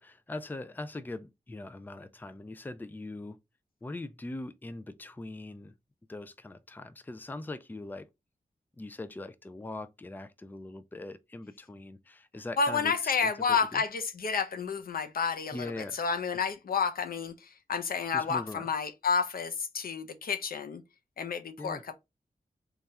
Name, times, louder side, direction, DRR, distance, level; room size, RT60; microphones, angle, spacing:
voice 1, 0.0-3.4 3.8-5.7 6.1-8.1 8.7-13.8 15.5-16.0 18.1-18.7 21.6-21.8, left 2 dB, 15° left, 0.4 m, -41 dB
voice 2, 12.6-20.8 21.2-21.9, left 5 dB, 85° left, 0.6 m, -30 dB
3.4 x 2.4 x 4.1 m
wide cardioid pair, 95°, 15 cm